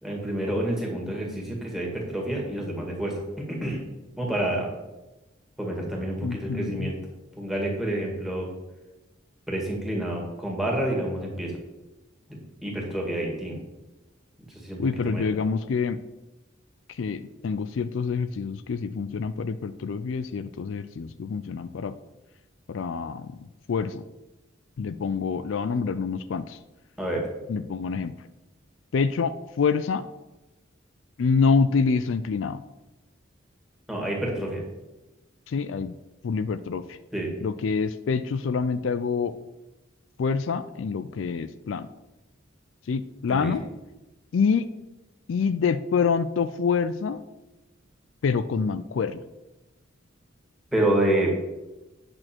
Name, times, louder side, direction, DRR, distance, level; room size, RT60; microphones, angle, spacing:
voice 1, 0.0-3.8 4.2-4.7 5.6-7.0 7.4-8.5 9.5-11.6 12.3-13.6 14.5-15.3 27.0-27.3 33.9-34.6 37.1-37.3 43.3-43.5 50.7-51.3, right 1 dB, ahead, -2 dB, 2.0 m, -28 dB
voice 2, 6.2-6.9 14.8-16.0 16.9-21.9 22.7-23.4 23.7-24.0 24.8-26.6 27.5-28.1 28.9-30.1 31.2-32.6 35.5-35.9 36.2-37.0 37.4-39.3 40.2-41.9 42.9-43.6 44.3-44.7 45.3-47.2 48.2-49.2, left 5 dB, 70° left, 13 dB, 0.4 m, -26 dB
8.8 x 6.3 x 4.4 m, 1.0 s
head